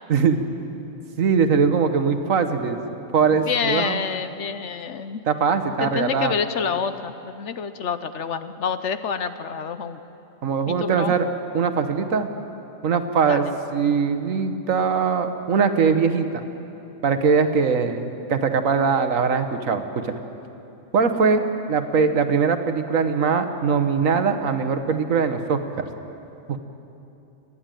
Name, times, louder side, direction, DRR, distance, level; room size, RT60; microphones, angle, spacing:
voice 1, 0.1-0.4 1.2-2.8 3.1-4.0 5.3-6.3 10.4-11.3 11.5-12.3 12.8-16.4 17.0-20.2 20.9-25.8 26.5-26.6, right 5 dB, 70° right, 8 dB, 1.5 m, -21 dB
voice 2, 3.3-5.2 5.8-10.0 10.7-11.2 13.3-13.5, left 6 dB, 60° left, 11 dB, 1.0 m, -28 dB
29.5 x 11.5 x 9.1 m, 2.9 s
omnidirectional pair, 1.4 m